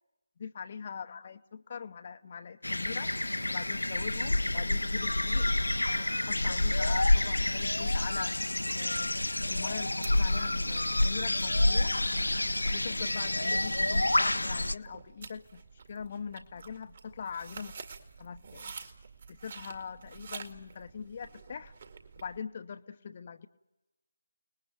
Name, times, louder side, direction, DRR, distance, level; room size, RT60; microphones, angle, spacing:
voice 1, 0.4-3.1 3.5-5.5 5.9-12.0 12.7-15.6 15.9-17.7 18.2-18.7 19.3-21.7 22.2-23.5, left 6 dB, 30° left, 9 dB, 0.8 m, -42 dB
sound 1, 2.6-14.7, left 1 dB, 70° left, 0.8 m, -28 dB
sound 2, 9.5-22.4, right 5 dB, 40° right, 2.1 m, -50 dB
30.0 x 20.0 x 9.1 m, 1.1 s
figure-of-eight pair, 155°, 0 cm